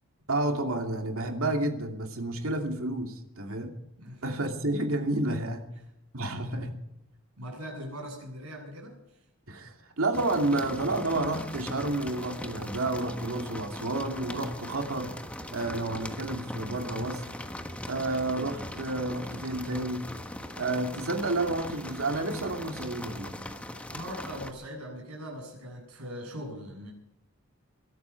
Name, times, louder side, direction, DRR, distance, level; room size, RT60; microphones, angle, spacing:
voice 1, 0.3-3.7 4.2-5.7 6.1-6.8 9.5-15.1 15.5-17.3 17.9-20.0 20.6-23.3, right 2 dB, 65° right, 2.7 m, -30 dB
voice 2, 7.4-9.2 23.9-26.9, equal, 85° right, 7.9 m, -41 dB
sound 1, 10.1-24.5, left 1 dB, 5° left, 1.3 m, -40 dB
23.0 x 12.5 x 4.7 m
head